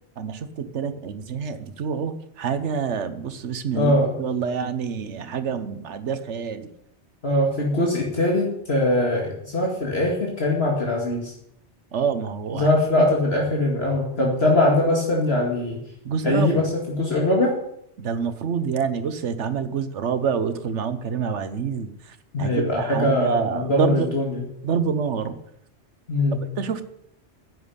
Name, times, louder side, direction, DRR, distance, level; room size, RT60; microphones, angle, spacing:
voice 1, 0.2-3.9 4.2-6.7 11.9-12.7 13.0-13.1 16.0-16.6 18.0-21.9 22.4-24.1 24.6-25.3 26.6-26.8, right 6 dB, 85° right, 11 dB, 1.3 m, -27 dB
voice 2, 3.7-4.2 7.2-11.3 12.5-15.8 16.2-17.5 22.3-24.4 26.1-26.5, left 1 dB, 65° left, -1 dB, 2.5 m, -22 dB
10.5 x 7.9 x 9.7 m, 0.74 s
omnidirectional pair, 1.2 m